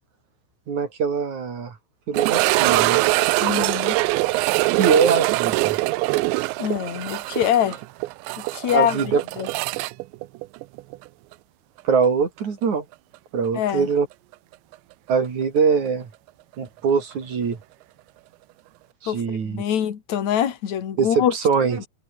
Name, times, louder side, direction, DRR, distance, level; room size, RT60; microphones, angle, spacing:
voice 1, 0.7-1.7 2.1-3.0 4.8-5.8 8.7-9.2 11.8-12.8 13.3-14.1 15.1-16.1 16.6-17.6 19.0-19.6 21.0-21.9, right 5 dB, 40° right, 4.0 m, -22 dB
sound 1, 2.1-11.1 11.3-11.4 12.0-12.1 14.7-14.8, right 20 dB, 85° right, 2.8 m, -23 dB
voice 2, 3.4-4.0 6.6-7.8 8.4-9.5 13.5-13.9 19.1-21.3, left 10 dB, 45° left, 3.1 m, -24 dB
omnidirectional pair, 5.5 m